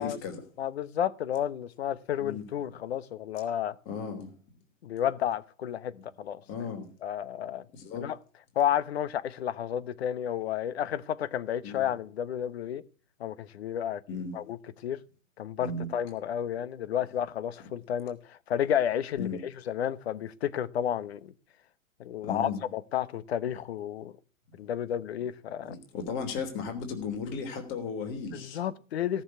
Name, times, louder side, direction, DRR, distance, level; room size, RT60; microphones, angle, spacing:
voice 1, 0.0-0.4 2.2-2.5 3.8-4.3 5.9-6.0 6.5-6.9 7.7-8.1 11.6-11.9 14.1-14.3 15.6-15.9 19.2-19.4 22.2-22.6 25.7-28.6, left 5 dB, 30° left, 3.3 m, -35 dB
voice 2, 0.6-3.8 4.8-5.9 6.2-6.4 7.0-7.6 8.0-8.2 8.5-12.8 13.2-14.0 14.3-14.6 14.8-15.0 15.4-21.3 22.0-24.1 24.6-25.7 28.3-29.2, left 10 dB, 50° left, 1.1 m, -31 dB
17.5 x 7.3 x 8.3 m
figure-of-eight pair, 110°, 40 cm